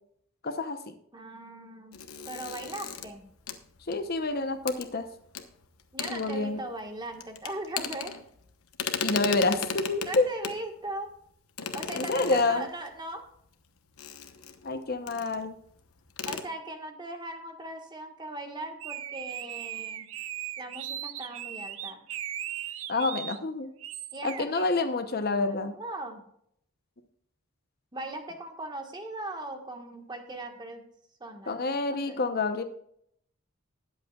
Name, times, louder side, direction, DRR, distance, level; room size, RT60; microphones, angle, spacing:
voice 1, 0.4-0.9 3.9-5.0 6.1-6.6 9.0-10.3 11.9-12.6 14.6-15.6 22.9-23.7 24.2-25.7 31.5-32.6, left 3 dB, 45° left, 8 dB, 0.8 m, -28 dB
voice 2, 1.1-2.0 2.2-3.3 5.9-8.1 10.0-11.1 11.7-13.2 16.2-20.1 20.6-22.0 24.1-24.7 25.5-26.2 27.9-30.8 31.2-32.2, right 2 dB, 20° right, 4 dB, 1.5 m, -39 dB
sound 1, 1.9-4.2 4.7-4.9 5.3-5.4 5.8-6.8 7.1-8.5 8.7-10.6 11.6-12.9 14.0-14.7 15.1-15.4 15.7-15.8 16.1-16.4, left 6 dB, 85° left, 1.1 m, -36 dB
sound 2, 18.8-23.4 23.8-24.4, right 11 dB, 65° right, 0.7 m, -38 dB
20.5 x 8.0 x 2.4 m, 0.69 s
head